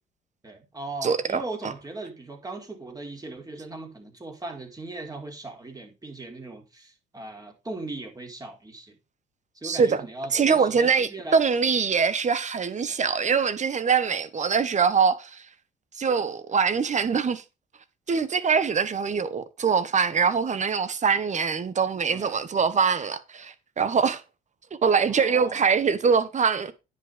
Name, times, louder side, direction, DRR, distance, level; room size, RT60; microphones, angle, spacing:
voice 1, 0.4-8.9 9.5-11.4 22.1-22.3 25.1-25.7, right 2 dB, 20° right, 4.2 m, -38 dB
voice 2, 1.0-1.7 9.6-10.0 10.3-15.4 16.0-17.4 18.1-24.2 24.8-26.7, right 6 dB, 40° right, 1.4 m, -23 dB
10.0 x 5.9 x 5.3 m
supercardioid pair, 75°, 19 cm